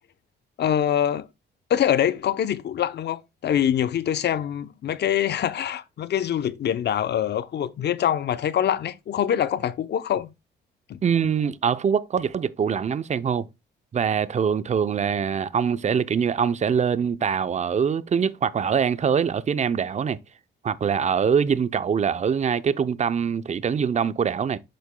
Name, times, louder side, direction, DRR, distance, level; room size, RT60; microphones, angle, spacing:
voice 1, 0.6-1.3 1.7-10.3 10.9-11.0, left 10 dB, 60° left, 0.7 m, -24 dB
voice 2, 11.0-13.5 13.9-20.2 20.6-24.6, right 7 dB, 35° right, 0.6 m, -23 dB
7.6 x 6.7 x 2.2 m
cardioid pair, 90°, 20 cm